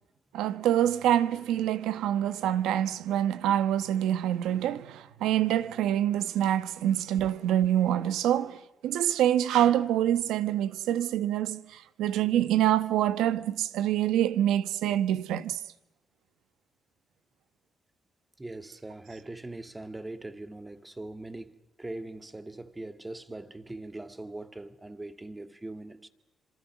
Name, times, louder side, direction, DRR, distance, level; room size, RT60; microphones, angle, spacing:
voice 1, 0.3-15.6, right 11 dB, 90° right, 1.2 m, -26 dB
voice 2, 18.4-26.1, right 2 dB, 15° right, 1.9 m, -41 dB
29.5 x 26.5 x 6.2 m
cardioid pair, 90°, 0 cm